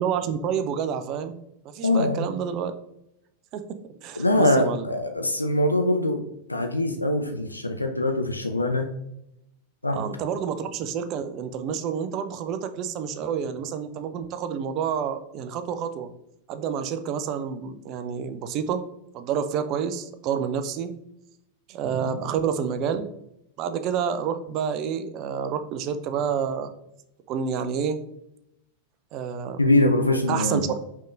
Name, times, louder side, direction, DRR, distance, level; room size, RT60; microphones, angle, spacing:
voice 1, 0.0-1.4 1.6-2.7 3.5-4.9 9.9-16.1 16.5-18.8 19.1-20.9 21.7-23.1 23.6-26.7 27.3-28.0 29.1-29.6 30.3-30.8, right 7 dB, 40° right, 10 dB, 0.4 m, -29 dB
voice 2, 1.8-2.2 4.2-6.2 6.5-8.9 9.8-10.0 29.6-30.6, left 1 dB, 85° left, 5 dB, 0.4 m, -23 dB
5.3 x 3.5 x 2.5 m, 0.80 s
figure-of-eight pair, 90°, 0 cm